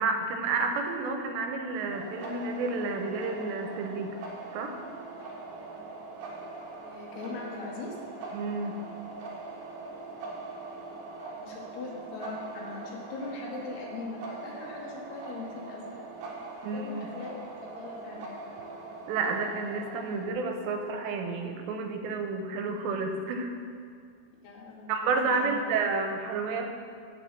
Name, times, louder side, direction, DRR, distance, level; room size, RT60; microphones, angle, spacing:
voice 1, 0.0-4.1 4.5-4.7 8.3-8.8 16.6-17.1 19.1-23.5 24.9-26.7, right 4 dB, 85° right, 4 dB, 2.9 m, -30 dB
sound 1, 1.9-20.3, right 3 dB, 70° right, 2.6 m, -42 dB
voice 2, 6.9-8.0 11.3-16.0 16.6-18.3 24.4-24.9 25.2-25.6, left 3 dB, 70° left, -2 dB, 3.2 m, -40 dB
7.5 x 6.1 x 7.1 m, 2.3 s
omnidirectional pair, 5.0 m